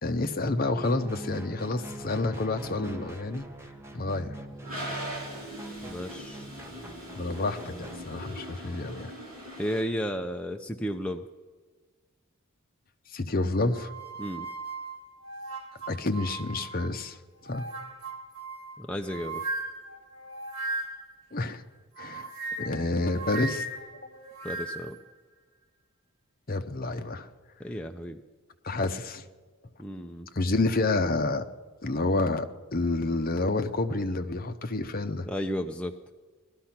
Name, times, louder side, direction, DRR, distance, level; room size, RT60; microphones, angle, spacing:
voice 1, 0.0-3.5 3.9-4.4 7.1-9.1 13.1-13.9 15.9-17.7 21.3-21.6 22.0-22.3 22.6-23.7 26.5-27.3 28.6-29.2 30.3-31.5 31.8-35.3, left 2 dB, 40° left, 9 dB, 0.7 m, -29 dB
sound 1, 0.6-8.1, right 1 dB, 10° right, 0.9 m, -42 dB
Toilet flush, 4.6-9.8, equal, 40° right, 5.5 m, -41 dB
voice 2, 5.9-6.5 9.6-11.3 14.2-14.5 18.8-19.4 24.4-25.0 27.6-28.2 29.8-30.3 35.2-36.1, equal, 5° left, 3 dB, 0.5 m, -33 dB
sound 2, 13.7-17.0 17.4-21.2 22.0-25.0, right 2 dB, 75° right, 2.7 m, -37 dB
18.0 x 13.0 x 5.9 m, 1.4 s
head